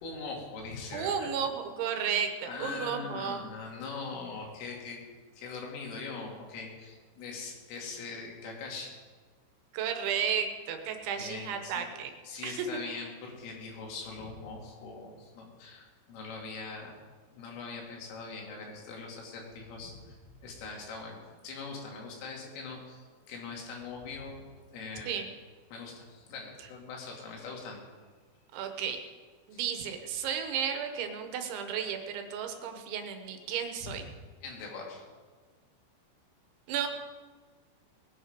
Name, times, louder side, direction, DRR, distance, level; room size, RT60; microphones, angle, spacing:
voice 1, 0.0-1.3 2.5-5.0 5.3-9.0 11.2-11.9 12.3-17.0 17.3-20.2 20.4-24.5 24.7-25.2 25.7-27.8 29.5-29.6 33.8-33.9 34.4-35.0, left 4 dB, 85° left, 0 dB, 5.1 m, -42 dB
voice 2, 0.9-3.4 9.7-12.1 12.4-12.7 25.1-25.3 28.5-29.0 29.5-34.0 36.7-36.9, right 7 dB, 75° right, 6 dB, 3.3 m, -33 dB
20.0 x 10.0 x 5.2 m, 1.5 s
omnidirectional pair, 5.6 m